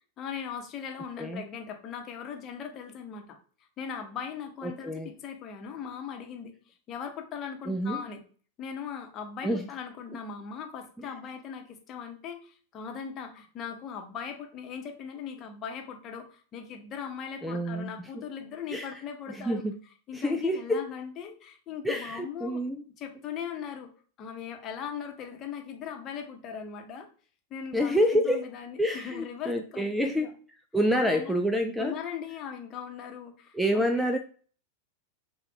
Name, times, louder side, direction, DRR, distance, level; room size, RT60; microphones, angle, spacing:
voice 1, 0.2-3.4 3.8-8.2 8.6-19.6 20.1-22.6 23.0-23.9 24.2-27.1 27.5-30.3 30.9-31.3 31.8-34.1, left 7 dB, 30° left, 4 dB, 0.9 m, -39 dB
voice 2, 4.6-5.1 7.7-8.0 9.4-9.7 11.0-11.1 17.4-18.3 18.7-19.0 19.3-19.8 20.1-20.9 21.8-22.8 27.7-28.5 28.8-30.3 30.7-32.0 33.5-34.2, equal, ahead, 7 dB, 0.3 m, -28 dB
5.8 x 2.3 x 3.4 m, 0.42 s
figure-of-eight pair, 90°, 0 cm